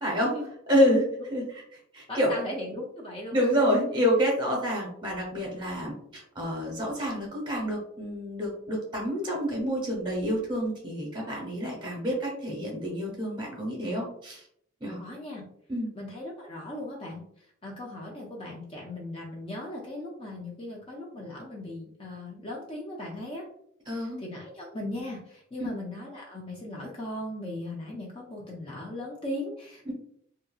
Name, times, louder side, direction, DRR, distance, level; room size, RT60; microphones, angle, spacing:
voice 1, 0.0-0.3 0.7-1.4 1.9-2.3 3.3-14.4 14.8-15.0 15.7-15.9 23.9-24.2 25.6-25.7 29.8-29.9, equal, 20° right, -2 dB, 0.9 m, -28 dB
voice 2, 2.1-3.5 15.0-15.4 15.9-17.2 17.6-23.4 23.9-29.9, left 1 dB, 25° left, -2 dB, 0.4 m, -38 dB
2.7 x 2.6 x 2.3 m, 0.67 s
head